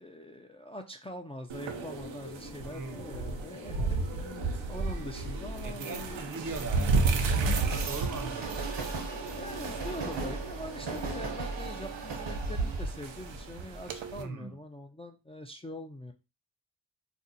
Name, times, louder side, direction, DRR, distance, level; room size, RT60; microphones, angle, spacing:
voice 1, 0.0-6.2 9.1-16.1, left 1 dB, 15° left, 0.4 m, -43 dB
sound 1, 1.5-14.2, right 4 dB, 90° right, 0.6 m, -35 dB
sound 2, 1.7-10.4, left 4 dB, 60° left, 0.8 m, -47 dB
voice 2, 2.6-3.1 5.6-8.6 14.2-14.6, right 3 dB, 45° right, 0.7 m, -40 dB
Train, 3.7-14.1, right 3 dB, 70° right, 1.0 m, -35 dB
2.6 x 2.1 x 3.9 m
cardioid pair, 50°, 44 cm